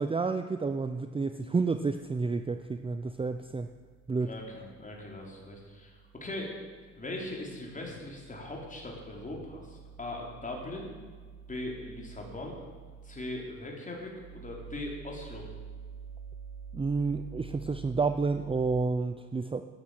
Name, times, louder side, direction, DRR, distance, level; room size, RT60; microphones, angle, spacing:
voice 1, 0.0-3.7 4.1-4.3 16.7-19.7, right 4 dB, 20° right, 9 dB, 0.6 m, -30 dB
sound 1, 1.7-18.8, right 6 dB, 70° right, 1.1 m, -49 dB
voice 2, 4.2-6.6 7.0-10.9 11.5-12.6 13.0-15.5, left 1 dB, 25° left, -1 dB, 4.1 m, -40 dB
13.0 x 8.9 x 7.9 m, 1.5 s
cardioid pair, 90°, 30 cm